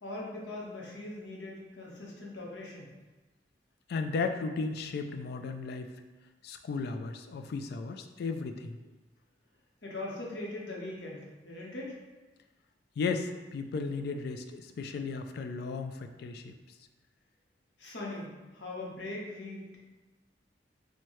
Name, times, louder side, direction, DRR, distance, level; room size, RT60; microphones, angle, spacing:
voice 1, 0.0-2.9 9.8-12.0 17.8-19.8, left 2 dB, 85° left, -3 dB, 0.9 m, -41 dB
voice 2, 3.9-5.9 6.4-8.8 13.0-16.5, left 4 dB, 60° left, 7 dB, 0.3 m, -35 dB
4.4 x 2.2 x 3.0 m, 1.2 s
head